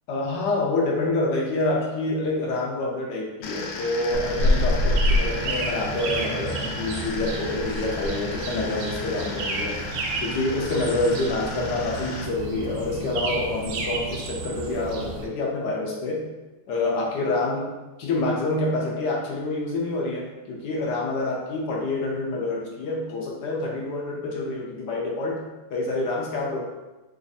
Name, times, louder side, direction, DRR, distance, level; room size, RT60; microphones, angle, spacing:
voice 1, 0.1-9.8 10.2-16.2 16.7-25.4 25.7-26.6, left 2 dB, 75° left, -2 dB, 1.0 m, -27 dB
sound 1, 3.4-12.3, left 3 dB, 90° left, 1.5 m, -36 dB
sound 2, 4.1-15.3, equal, 80° right, 1.0 m, -28 dB
3.4 x 2.5 x 3.9 m, 1.1 s
omnidirectional pair, 2.3 m